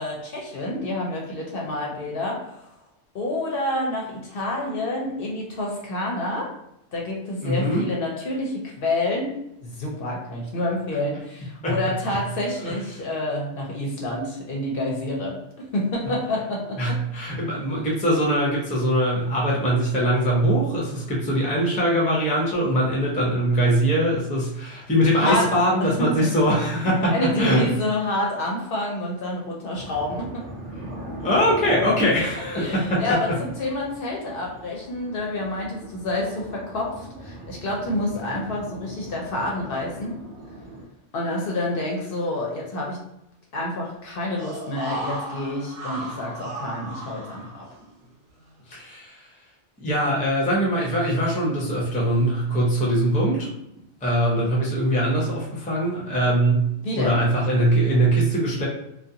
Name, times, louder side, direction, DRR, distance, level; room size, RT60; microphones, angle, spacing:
voice 1, 0.0-2.6 3.1-6.5 6.9-17.0 25.1-26.3 26.8-30.5 32.5-40.2 41.1-43.0 43.5-47.7 56.8-57.2, left 1 dB, 60° left, -2 dB, 0.7 m, -28 dB
voice 2, 7.4-7.9 11.6-11.7 12.6-12.7 16.8-27.1 27.4-27.6 31.2-33.0 48.7-49.2 49.8-53.5 54.0-58.7, right 1 dB, 10° left, -4 dB, 0.4 m, -22 dB
sound 1, 29.7-40.9, right 1 dB, 60° right, 0.6 m, -40 dB
sound 2, 44.4-48.1 48.4-48.5, right 1 dB, 90° right, 1.0 m, -35 dB
2.4 x 2.2 x 2.7 m, 0.80 s
omnidirectional pair, 1.2 m